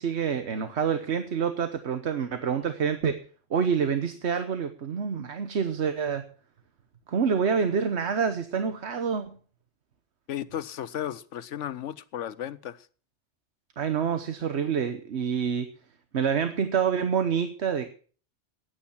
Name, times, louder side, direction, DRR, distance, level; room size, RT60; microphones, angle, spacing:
voice 1, 0.0-3.2 3.5-6.2 7.1-9.4 13.8-15.7 16.1-17.9, right 6 dB, 70° right, 1.3 m, -27 dB
voice 2, 10.3-12.9, left 10 dB, 90° left, 1.1 m, -34 dB
14.0 x 9.7 x 5.9 m
omnidirectional pair, 1.2 m